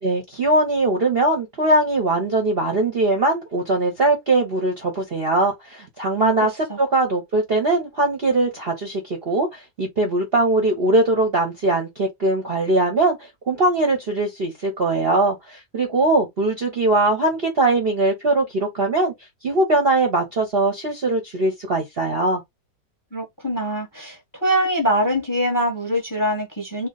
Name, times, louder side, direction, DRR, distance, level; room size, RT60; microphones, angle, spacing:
voice 1, 0.0-19.1 19.4-22.4, right 2 dB, 45° right, 0.8 m, -21 dB
voice 2, 23.1-26.9, equal, 15° left, 1.0 m, -23 dB
3.0 x 2.4 x 3.9 m
omnidirectional pair, 1.9 m